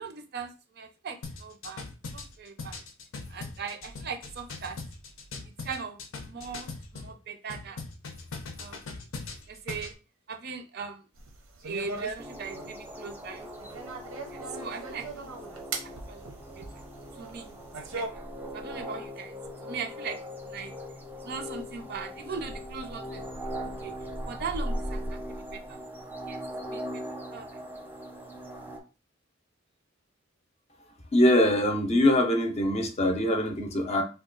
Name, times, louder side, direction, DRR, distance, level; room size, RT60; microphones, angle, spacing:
voice 1, 0.0-1.8 2.1-2.8 3.3-4.8 5.6-7.8 8.6-8.8 9.5-10.0 10.3-11.1 11.6-13.5 14.3-16.2 17.1-17.5 17.9-18.2 18.5-19.4 19.6-20.2 20.4-20.7 21.2-23.2 23.6-23.9 24.3-25.8 26.3-26.4 26.7-27.0 27.3-27.6, right 5 dB, 55° right, 7 dB, 0.5 m, -39 dB
sound 1, 1.2-7.1 7.5-9.9, left 3 dB, 85° left, 0.6 m, -40 dB
sound 2, 11.2-18.1, right 3 dB, 90° right, 0.7 m, -40 dB
sound 3, 12.2-28.8, equal, 10° right, 0.6 m, -39 dB
voice 2, 31.1-34.0, left 1 dB, 35° left, 5 dB, 0.6 m, -23 dB
2.8 x 2.2 x 3.8 m, 0.33 s
head